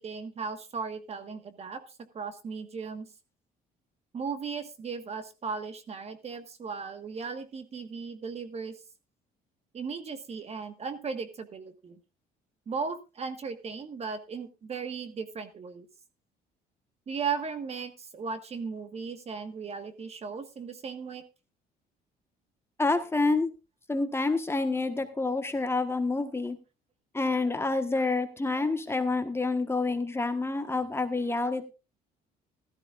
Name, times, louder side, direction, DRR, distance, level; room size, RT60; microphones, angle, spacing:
voice 1, 0.0-1.8 2.1-3.1 4.1-8.8 9.7-12.0 12.7-15.9 17.1-21.2, right 5 dB, 40° right, 9 dB, 1.5 m, -36 dB
voice 2, 22.8-23.5 23.9-26.6 27.1-31.7, left 3 dB, 15° left, 8 dB, 1.3 m, -28 dB
16.5 x 13.5 x 2.5 m, 0.29 s
cardioid pair, 110°, 17 cm